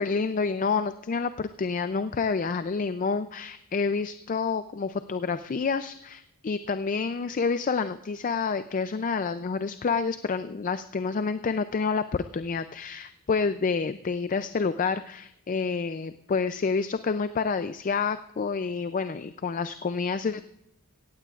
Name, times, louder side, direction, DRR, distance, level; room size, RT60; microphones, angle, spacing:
voice 1, 0.0-20.4, left 5 dB, 35° left, 11 dB, 0.4 m, -28 dB
17.0 x 15.5 x 2.4 m, 0.83 s
head